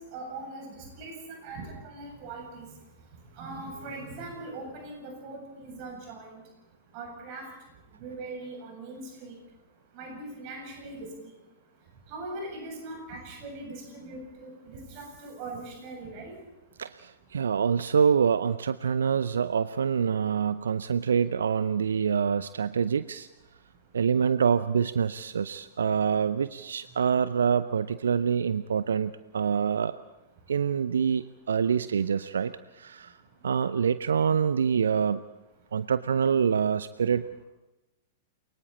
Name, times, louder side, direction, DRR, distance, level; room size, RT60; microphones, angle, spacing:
voice 1, 0.1-2.7 3.3-6.4 6.9-7.5 8.0-9.4 9.9-11.1 12.1-16.3, right 2 dB, 45° right, 1 dB, 8.0 m, -40 dB
voice 2, 16.8-23.3 23.9-30.0 30.5-33.2 33.4-35.2 35.7-37.2, right 7 dB, 70° right, 14 dB, 0.6 m, -26 dB
29.0 x 23.5 x 4.3 m, 1.0 s
figure-of-eight pair, 100°, 0 cm